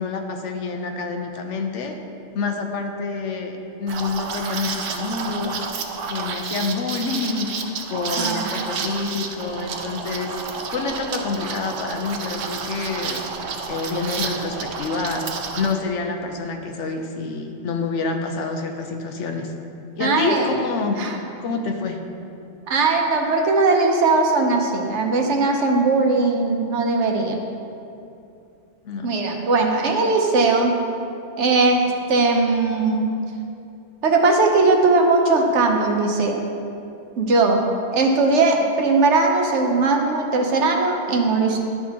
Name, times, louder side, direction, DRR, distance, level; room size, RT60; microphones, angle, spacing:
voice 1, 0.0-2.0 2.3-5.6 6.1-7.5 7.9-13.2 13.7-15.3 15.6-19.5 20.0-21.0 21.4-22.0 28.8-29.1, left 4 dB, 75° left, 4 dB, 1.0 m, -27 dB
Liquid, 3.9-15.7, right 5 dB, 85° right, 1.0 m, -30 dB
voice 2, 8.2-8.5 20.0-20.5 21.0-21.2 22.7-27.4 29.0-30.7 31.4-33.2 34.0-36.4 37.2-37.6 37.9-41.6, right 3 dB, 70° right, 2 dB, 1.1 m, -19 dB
11.0 x 5.7 x 2.8 m, 2.7 s
omnidirectional pair, 1.3 m